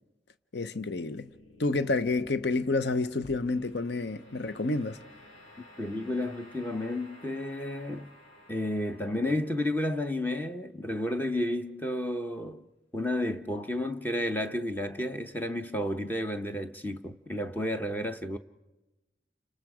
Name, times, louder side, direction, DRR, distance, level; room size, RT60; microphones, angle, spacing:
voice 1, 0.5-1.3 1.6-5.0, left 3 dB, 60° left, 0.7 m, -29 dB
sound 1, 1.1-12.3, left 1 dB, 85° left, 6.3 m, -55 dB
voice 2, 5.8-8.1 8.5-12.7 12.9-18.4, left 1 dB, 10° left, 0.8 m, -31 dB
30.0 x 26.5 x 4.9 m
head